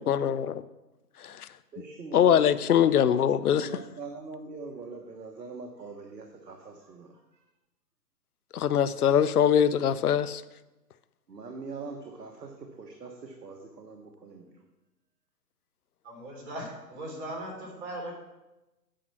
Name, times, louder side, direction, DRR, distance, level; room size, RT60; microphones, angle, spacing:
voice 1, 0.1-0.6 1.3-1.5 2.1-3.8 8.5-10.4, left 9 dB, 65° left, 15 dB, 0.6 m, -23 dB
voice 2, 1.7-2.5 2.8-3.3 3.6-7.1 11.3-12.5 12.8-14.4, right 4 dB, 75° right, 3 dB, 1.3 m, -42 dB
voice 3, 16.0-18.1, right 1 dB, 40° right, -1 dB, 3.3 m, -38 dB
8.9 x 5.6 x 6.0 m, 1.0 s
figure-of-eight pair, 135°, 49 cm